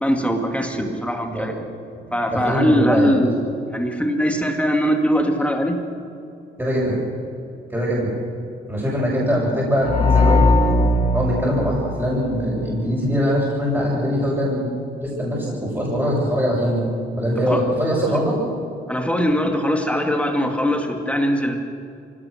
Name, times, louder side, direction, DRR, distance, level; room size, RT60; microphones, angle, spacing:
voice 1, 0.0-1.7 2.1-5.8 17.5-17.6 18.9-21.6, equal, 5° left, 3 dB, 2.3 m, -21 dB
voice 2, 2.1-3.2 6.6-6.9 7.7-8.1 8.7-10.7 11.1-14.6 15.0-16.8 17.2-18.4, equal, 10° right, -6 dB, 7.3 m, -22 dB
sound 1, 9.8-12.6, left 2 dB, 35° left, 3.4 m, -19 dB
24.0 x 17.5 x 6.6 m, 2.6 s
cardioid pair, 90°, 20 cm